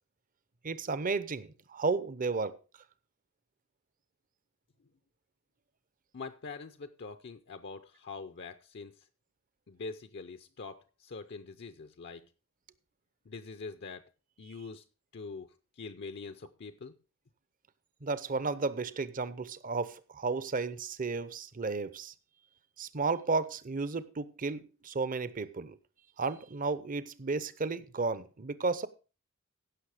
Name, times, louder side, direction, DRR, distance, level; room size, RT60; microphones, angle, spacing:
voice 1, 0.6-2.6 18.0-22.1 22.8-25.8 26.2-28.9, right 4 dB, 40° right, 0.8 m, -33 dB
voice 2, 6.1-9.0 9.7-12.2 13.3-14.1 14.4-14.8 15.1-16.9, left 4 dB, 55° left, 0.6 m, -44 dB
16.0 x 6.3 x 4.9 m
head